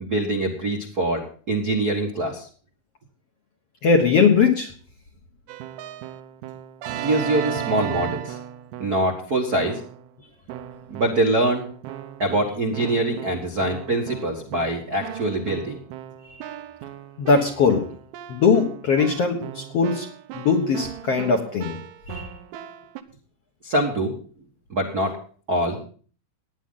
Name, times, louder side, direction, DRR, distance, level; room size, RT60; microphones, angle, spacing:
voice 1, 0.0-2.5 7.0-8.4 8.8-9.8 10.9-11.7 12.2-15.8 23.6-24.1 24.7-25.2 25.5-25.8, right 1 dB, 60° right, 1 dB, 1.0 m, -24 dB
voice 2, 3.8-4.7 17.2-17.9 18.3-20.1 20.3-21.8 22.1-22.3, left 5 dB, 60° left, 2 dB, 1.6 m, -20 dB
Keyboard (musical), 5.5-9.1 9.6-10.1 10.5-23.0, right 11 dB, 80° right, 2.8 m, -36 dB
17.5 x 10.0 x 3.8 m, 0.43 s
omnidirectional pair, 4.5 m